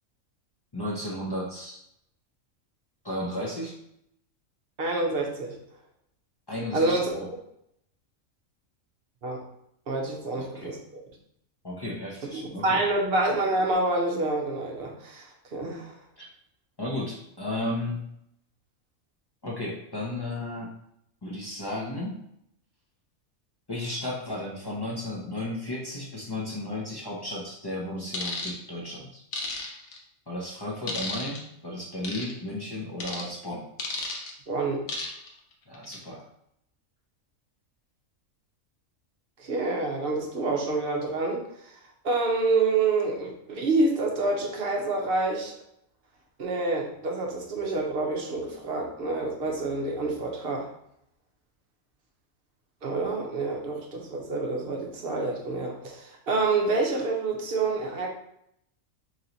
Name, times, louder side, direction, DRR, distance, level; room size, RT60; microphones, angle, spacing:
voice 1, 0.7-1.8 3.0-3.8 6.5-7.3 10.2-10.7 11.6-12.8 16.2-16.3 16.8-18.1 19.4-20.7 21.2-22.2 23.7-29.2 30.3-33.7 35.7-36.3, left 1 dB, 40° left, -4 dB, 0.3 m, -34 dB
voice 2, 4.8-5.6 6.7-7.2 9.2-9.4 9.9-11.0 12.3-15.9 34.5-34.8 39.4-41.4 42.0-45.6 46.4-50.7 52.8-58.1, right 3 dB, 50° right, 0 dB, 0.8 m, -27 dB
sound 1, 28.1-28.5 29.3-30.0 30.9-31.4 32.0-32.3 33.0-33.3 33.8-34.3 34.9-35.3 35.7-36.0, left 3 dB, 85° left, 1.2 m, -33 dB
3.1 x 2.9 x 3.9 m, 0.74 s
omnidirectional pair, 1.4 m